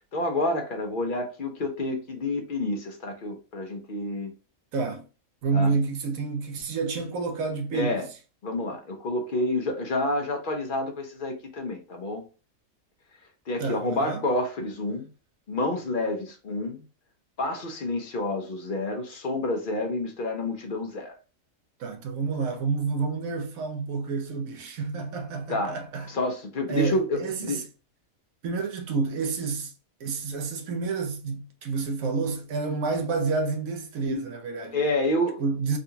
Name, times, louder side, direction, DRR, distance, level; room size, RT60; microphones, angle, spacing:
voice 1, 0.0-4.3 5.5-5.7 7.7-8.1 8.4-12.2 13.5-15.1 15.5-16.8 17.4-21.1 25.5-25.8 26.1-27.6 34.7-35.4, left 1 dB, 50° left, 0.7 m, -29 dB
voice 2, 4.7-5.0 5.4-8.0 13.6-14.2 21.8-26.1 26.7-27.6 28.4-29.7 30.0-34.8 35.4-35.8, right 4 dB, 75° right, 1.1 m, -29 dB
3.7 x 2.3 x 2.7 m
omnidirectional pair, 1.5 m